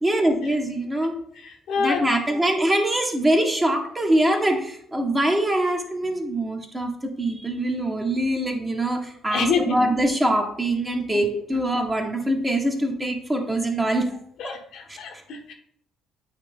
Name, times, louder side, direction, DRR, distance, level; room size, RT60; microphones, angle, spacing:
voice 1, 0.0-1.2 1.8-14.1 14.4-14.5 14.9-15.0, right 1 dB, 20° right, 1.3 m, -23 dB
voice 2, 1.7-2.1 9.3-9.6 11.1-11.2 14.4-15.5, left 6 dB, 65° left, 0.9 m, -26 dB
8.8 x 3.0 x 3.6 m
hypercardioid pair, 50°, 0 cm